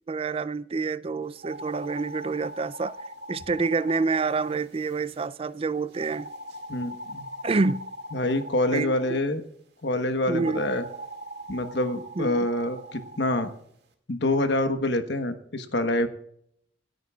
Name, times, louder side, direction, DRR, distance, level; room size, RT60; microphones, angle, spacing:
voice 1, 0.1-2.9 3.3-6.3 7.4-7.8 8.7-9.2 10.3-10.6 12.2-12.5, right 4 dB, 30° right, 0.4 m, -27 dB
sound 1, 1.4-5.3 5.9-9.2 10.3-13.5, right 1 dB, 65° right, 2.1 m, -41 dB
voice 2, 6.7-7.3 8.1-9.4 9.8-10.8 11.5-13.5 14.1-16.1, left 1 dB, 70° left, 1.2 m, -26 dB
27.0 x 9.2 x 2.4 m
head